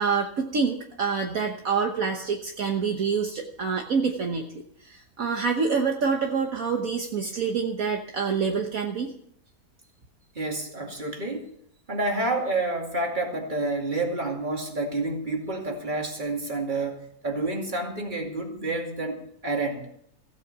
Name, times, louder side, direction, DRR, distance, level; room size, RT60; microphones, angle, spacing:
voice 1, 0.0-9.1, right 5 dB, 60° right, 2 dB, 1.6 m, -27 dB
voice 2, 10.4-11.5 11.9-19.8, right 2 dB, 30° right, 1 dB, 2.6 m, -29 dB
15.5 x 8.6 x 6.9 m, 0.67 s
omnidirectional pair, 1.7 m